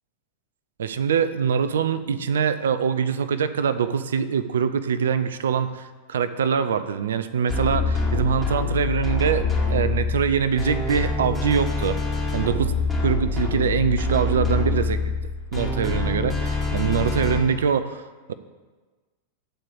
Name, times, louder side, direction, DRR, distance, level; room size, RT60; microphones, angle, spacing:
voice 1, 0.8-12.0 12.3-12.8 13.0-15.0 15.5-18.0, right 7 dB, 65° right, 13 dB, 0.4 m, -24 dB
sound 1, 7.5-17.4, left 3 dB, 10° left, 2.5 m, -25 dB
8.8 x 4.5 x 7.0 m, 1.4 s
figure-of-eight pair, 90°, 0 cm